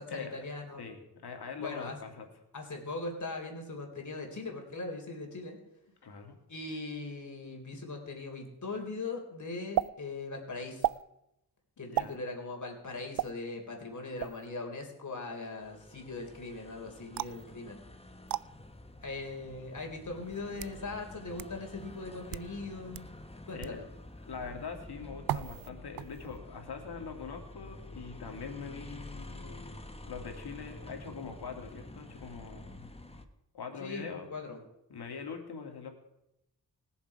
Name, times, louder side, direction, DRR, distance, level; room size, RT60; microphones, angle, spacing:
voice 1, 0.0-0.9 1.6-2.0 2.5-5.6 6.5-10.9 11.8-17.8 19.0-23.1 23.5-23.8 33.8-34.6, left 3 dB, 45° left, 2 dB, 3.6 m, -40 dB
voice 2, 0.8-2.3 6.0-6.3 11.9-12.1 23.5-23.8 24.2-29.7 30.0-32.9 33.5-34.3 34.9-35.9, left 5 dB, 70° left, 4 dB, 2.5 m, -43 dB
sound 1, 9.8-9.9 10.8-11.0 12.0-12.2 13.2-13.3 14.2-14.5 17.2-17.4 18.3-18.4 19.4-19.5 20.3-20.8 21.4-21.5 22.2-22.5 22.9-23.1 23.6-23.8 25.3-25.7 26.0-26.4, right 12 dB, 60° right, 0.5 m, -33 dB
sound 2, 15.6-33.3, left 1 dB, 15° left, 1.3 m, -49 dB
20.5 x 7.2 x 4.9 m, 0.84 s
cardioid pair, 60°, 39 cm